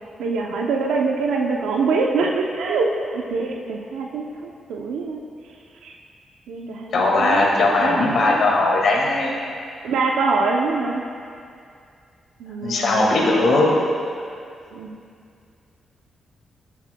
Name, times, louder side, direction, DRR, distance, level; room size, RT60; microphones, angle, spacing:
voice 1, 0.2-5.2 5.8-5.9 6.5-8.1 9.8-11.0 12.4-13.7 14.7-14.9, right 4 dB, 85° right, 0 dB, 0.7 m, -24 dB
voice 2, 6.9-9.3 12.6-13.7, left 2 dB, 70° left, -2 dB, 1.9 m, -18 dB
16.5 x 7.2 x 2.3 m, 2.4 s
supercardioid pair, 60°, 0 cm